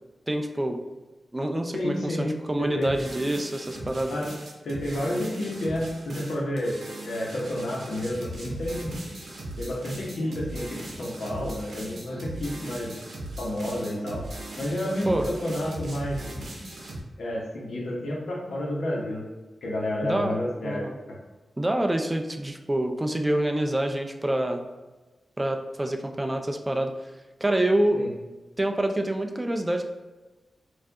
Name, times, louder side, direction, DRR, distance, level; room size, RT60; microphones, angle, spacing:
voice 1, 0.3-0.8 1.3-4.2 15.1-15.3 20.0-20.4 20.6-21.0 21.6-24.6 25.4-26.9 27.4-28.0 28.6-29.8, right 1 dB, 15° right, 4 dB, 0.3 m, -26 dB
voice 2, 1.7-3.0 4.1-4.3 4.6-6.8 7.0-9.0 9.6-12.9 13.4-14.2 14.6-16.2 17.2-19.3 19.6-21.2 27.9-28.1, left 1 dB, 80° left, -2 dB, 0.9 m, -30 dB
sound 1, 2.8-17.0, right 1 dB, 60° right, 0.7 m, -39 dB
4.3 x 2.4 x 2.7 m, 1.2 s
wide cardioid pair, 140°, 0 cm